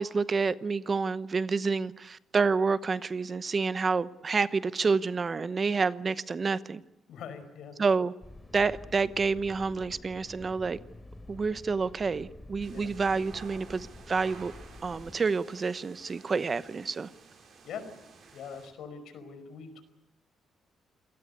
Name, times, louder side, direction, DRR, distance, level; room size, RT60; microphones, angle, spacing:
voice 1, 0.0-6.8 7.8-8.1 8.5-10.8 11.3-14.5 14.8-17.1, right 4 dB, 35° right, 0.9 m, -28 dB
voice 2, 7.1-7.8 12.7-12.9 17.6-17.8 18.3-19.8, left 6 dB, 75° left, 5.2 m, -42 dB
sound 1, 8.2-15.1, left 2 dB, 15° left, 3.5 m, -48 dB
sound 2, 12.6-18.7, right 5 dB, 55° right, 7.2 m, -52 dB
28.0 x 18.5 x 8.2 m
cardioid pair, 90°, 0 cm